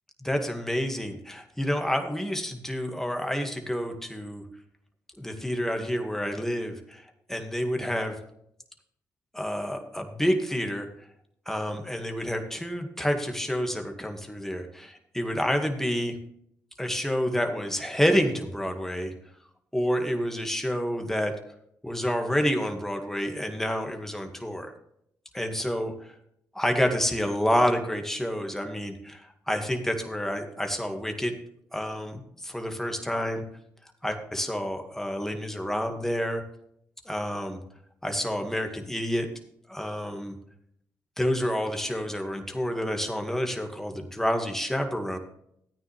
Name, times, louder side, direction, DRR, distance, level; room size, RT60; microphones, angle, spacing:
voice 1, 0.2-4.4 5.2-7.0 7.3-8.2 9.3-10.9 11.5-16.1 16.8-19.1 19.7-21.3 21.8-24.7 25.3-26.1 26.5-31.3 31.7-33.4 34.0-36.4 37.1-37.6 38.0-39.3 39.7-40.4 41.2-45.2, equal, 5° left, 4 dB, 2.0 m, -28 dB
13.5 x 9.3 x 3.4 m, 0.72 s
supercardioid pair, 55°, 7 cm